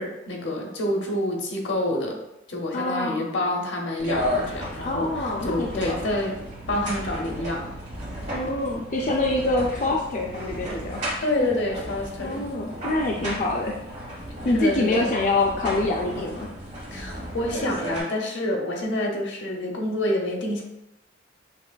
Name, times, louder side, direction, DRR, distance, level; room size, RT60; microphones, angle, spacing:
voice 1, 0.0-2.2 2.5-6.4 6.7-7.7 11.2-12.4 14.5-15.1 16.9-20.6, left 1 dB, 80° left, 0 dB, 0.8 m, -27 dB
voice 2, 2.7-3.2 4.8-6.0 8.3-11.0 12.2-13.8 14.4-16.5, left 2 dB, 40° left, -1 dB, 0.4 m, -25 dB
sound 1, 4.0-18.0, equal, 40° right, 1.2 m, -34 dB
5.9 x 2.4 x 2.2 m, 0.89 s
head